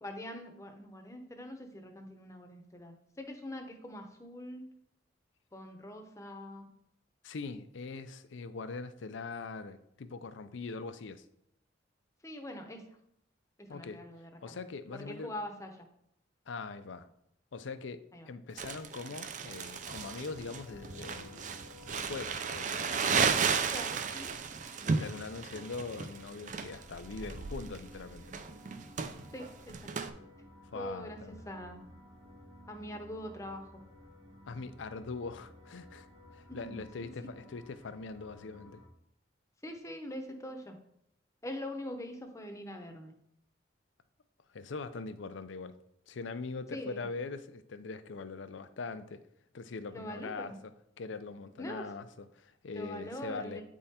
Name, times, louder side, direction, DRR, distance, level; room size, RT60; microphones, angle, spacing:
voice 1, 0.0-4.6 5.5-6.7 12.2-12.8 13.6-14.6 14.9-15.9 18.1-18.3 23.7-24.3 29.3-30.3 30.7-31.8 32.7-33.8 36.5-36.8 39.6-40.8 41.4-43.1 46.7-47.1 49.9-50.6 51.6-51.9 52.7-53.6, left 1 dB, 15° left, 0.7 m, -43 dB
voice 2, 7.2-11.3 13.7-14.0 14.4-15.3 16.5-17.1 17.5-22.8 24.8-28.3 30.7-31.4 34.5-36.1 36.3-38.8 44.5-45.8 46.1-49.2 49.5-50.5 51.0-53.6, left 4 dB, 80° left, 0.5 m, -42 dB
Crumpling crinkling, 18.6-30.1, right 5 dB, 40° right, 0.4 m, -34 dB
sound 1, 19.8-38.9, left 1 dB, 85° right, 1.4 m, -54 dB
8.8 x 3.7 x 4.2 m
head